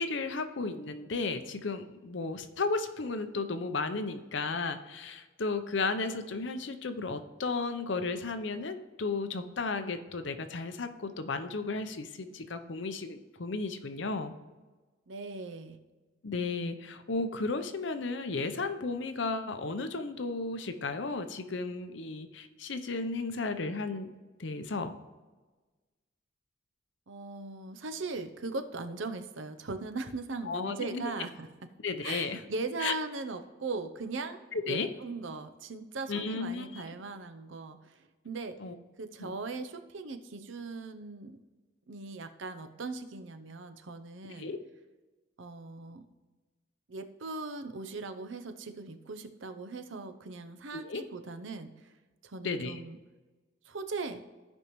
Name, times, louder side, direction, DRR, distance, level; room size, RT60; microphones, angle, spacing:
voice 1, 0.0-14.3 16.2-24.1 24.4-24.9 30.4-31.0 31.8-32.4 32.8-32.9 34.5-34.9 36.1-36.8 38.6-38.8 39.2-39.3 44.4-44.6 50.7-51.0 52.4-52.8, left 3 dB, 65° left, 9 dB, 0.7 m, -34 dB
voice 2, 15.1-15.8 27.1-31.5 32.0-38.6 39.0-41.4 41.9-44.5 45.4-46.0 46.9-51.9 52.2-53.0 53.6-54.2, right 3 dB, 75° right, 8 dB, 0.7 m, -39 dB
15.5 x 5.3 x 3.1 m, 1.3 s
head